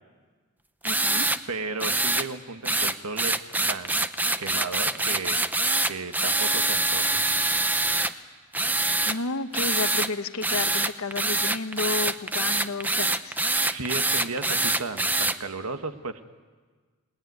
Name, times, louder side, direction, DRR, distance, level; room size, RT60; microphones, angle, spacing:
voice 1, 0.8-1.3 9.1-13.4, left 3 dB, 65° left, 9 dB, 1.3 m, -31 dB
sound 1, 0.8-1.4 1.8-2.3 2.7-8.1 8.5-9.2 9.5-10.1 10.4-15.4, right 2 dB, 10° right, 0.7 m, -25 dB
voice 2, 1.5-3.4 3.7-4.1 4.4-5.4 5.8-7.2 13.6-16.2, right 3 dB, 75° right, 8 dB, 1.5 m, -34 dB
29.0 x 20.0 x 9.5 m, 1.5 s
head